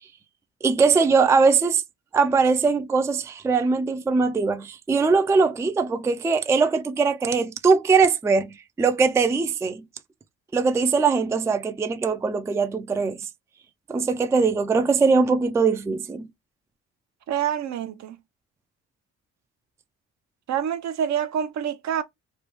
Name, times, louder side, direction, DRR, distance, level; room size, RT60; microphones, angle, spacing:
voice 1, 0.6-1.8 2.1-9.8 10.5-13.3 13.9-16.3, right 4 dB, 10° right, 0.3 m, -21 dB
voice 2, 17.3-18.2 20.5-22.0, right 9 dB, 65° right, 0.6 m, -26 dB
3.2 x 2.2 x 3.0 m
cardioid pair, 90°, 30 cm